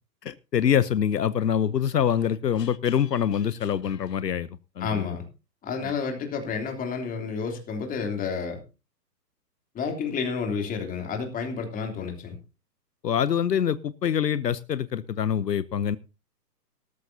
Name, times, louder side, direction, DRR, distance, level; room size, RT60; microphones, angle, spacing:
voice 1, 0.2-4.5 4.8-5.1 5.8-5.9 13.0-16.0, left 8 dB, 75° left, 16 dB, 0.9 m, -25 dB
voice 2, 4.8-5.2 5.6-8.6 9.7-12.4, left 5 dB, 15° left, 4 dB, 3.2 m, -30 dB
17.5 x 13.0 x 2.8 m, 0.31 s
figure-of-eight pair, 125°, 49 cm